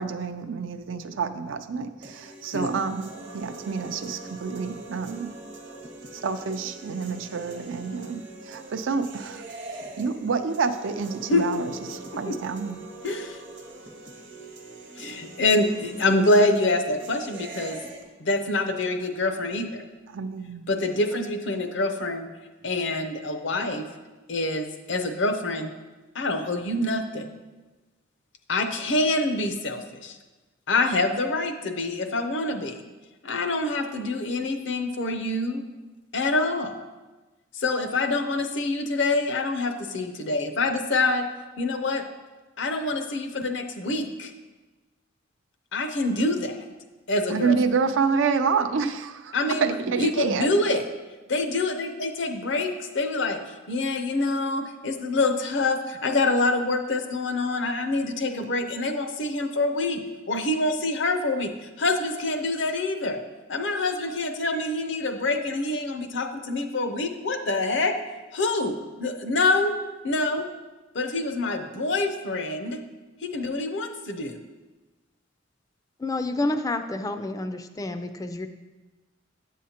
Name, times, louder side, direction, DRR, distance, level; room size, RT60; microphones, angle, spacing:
voice 1, 0.0-5.3 6.1-9.4 10.0-12.8 20.1-20.7 47.3-50.8, right 5 dB, 85° right, 9 dB, 0.5 m, -28 dB
sound 1, 2.0-18.0, right 2 dB, 60° right, 0.9 m, -42 dB
voice 2, 13.0-13.4 15.0-17.8 18.2-19.8 20.7-22.3 22.6-23.8 24.3-25.7 26.1-27.3 28.5-30.2 30.7-32.8 33.2-35.6 36.1-36.8 37.5-41.3 41.6-42.0 42.6-44.3 45.7-46.6 47.1-47.5 49.3-50.8 51.3-53.4 53.7-60.0 60.3-61.5 61.8-63.2 63.5-67.9 68.3-68.7 69.0-69.7 70.0-70.5 70.9-72.8 73.2-74.4, left 2 dB, 70° left, 6 dB, 0.7 m, -26 dB
voice 3, 76.0-78.5, left 2 dB, 20° left, 8 dB, 0.3 m, -29 dB
8.3 x 7.3 x 2.8 m, 1.2 s
head